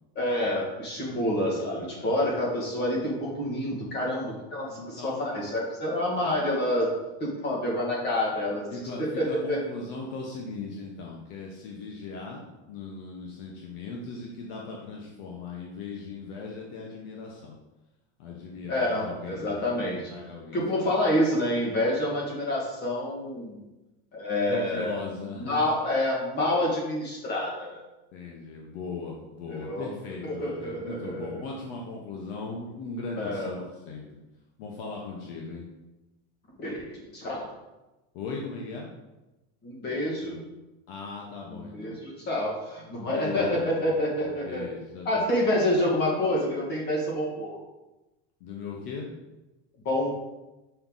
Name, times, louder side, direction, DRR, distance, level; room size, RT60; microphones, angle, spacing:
voice 1, 0.2-6.9 7.2-8.7 9.0-9.6 18.7-20.1 20.5-23.6 24.1-25.0 25.4-27.8 29.5-29.9 30.2-31.3 33.2-33.6 36.6-37.4 39.6-40.5 41.5-44.7 45.1-47.6 49.8-50.1, left 1 dB, 30° left, -2 dB, 2.2 m, -28 dB
voice 2, 4.7-5.3 8.7-17.6 18.2-21.0 24.5-25.8 28.1-34.1 34.6-35.7 38.1-38.9 40.9-42.0 42.8-45.3 48.4-49.1, left 3 dB, 60° left, -1 dB, 1.3 m, -39 dB
6.9 x 5.3 x 4.1 m, 1.0 s
supercardioid pair, 155°, 33 cm